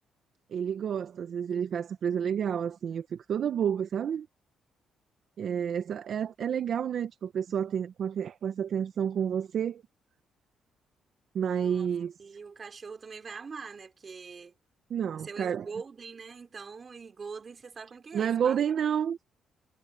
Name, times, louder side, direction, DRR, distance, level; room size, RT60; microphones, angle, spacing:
voice 1, 0.5-4.3 5.4-9.8 11.3-12.1 14.9-15.7 18.1-19.2, right 8 dB, 60° right, 0.9 m, -30 dB
voice 2, 12.2-14.5 15.2-18.6, right 5 dB, 40° right, 3.7 m, -43 dB
cardioid pair, 90°, 0 cm